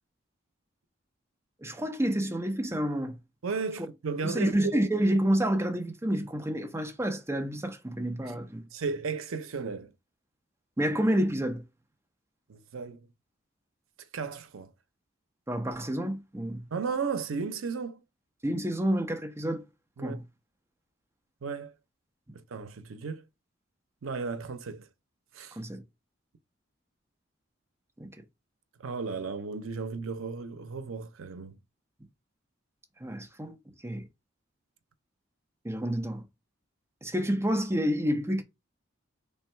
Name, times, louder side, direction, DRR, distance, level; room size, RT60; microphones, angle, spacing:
voice 1, 1.6-3.2 3.8-3.9 4.2-8.7 10.8-11.6 15.5-16.7 18.4-19.6 20.0-20.2 25.5-25.8 28.0-28.1 33.0-33.5 33.8-34.1 35.6-36.2 37.0-38.4, equal, 15° right, 0.6 m, -29 dB
voice 2, 3.4-4.5 8.3-8.4 8.7-9.9 12.5-13.1 14.1-14.7 16.7-18.0 20.0-20.2 21.4-21.7 22.3-23.2 24.0-24.9 25.3-25.6 28.8-31.6, right 5 dB, 90° right, 0.6 m, -34 dB
3.5 x 2.3 x 4.2 m
head